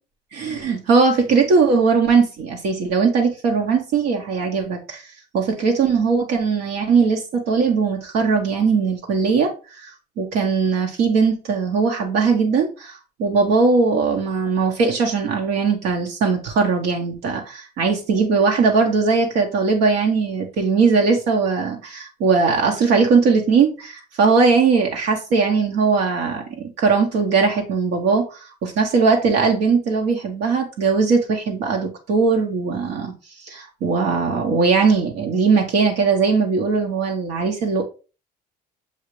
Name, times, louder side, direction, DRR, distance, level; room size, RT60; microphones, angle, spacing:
voice 1, 0.3-5.1 5.3-33.1 33.4-37.8, right 4 dB, 80° right, 0.8 m, -19 dB
7.0 x 2.4 x 3.0 m
cardioid pair, 110°, 17 cm